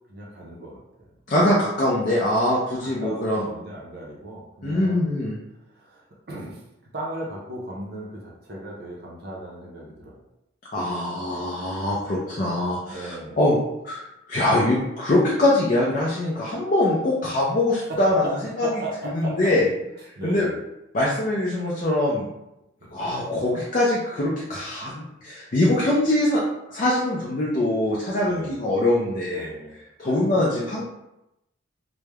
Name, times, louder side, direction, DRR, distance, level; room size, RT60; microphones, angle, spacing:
voice 1, 0.1-1.1 2.8-5.1 5.7-6.6 6.9-10.2 12.9-13.4 17.9-19.5 20.2-20.6 22.8-23.1 28.2-28.5 29.3-29.7 30.0-30.8, right 1 dB, 50° right, -3 dB, 0.5 m, -36 dB
voice 2, 1.3-3.4 4.6-5.4 10.7-13.6 13.8-18.2 18.6-18.7 19.1-19.7 20.2-20.5 20.9-22.3 22.9-26.4 26.7-29.5 30.0-30.8, left 1 dB, 40° left, -5 dB, 0.4 m, -23 dB
3.1 x 2.0 x 2.2 m, 0.88 s
head